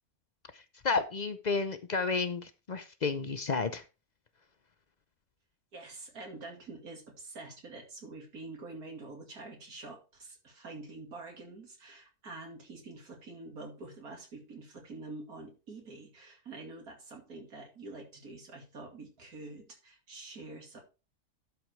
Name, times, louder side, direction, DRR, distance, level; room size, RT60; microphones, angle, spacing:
voice 1, 0.5-3.8, left 4 dB, 50° left, 11 dB, 0.5 m, -32 dB
voice 2, 5.7-20.8, right 3 dB, 80° right, 2 dB, 2.9 m, -46 dB
11.5 x 5.0 x 4.5 m, 0.31 s
omnidirectional pair, 1.5 m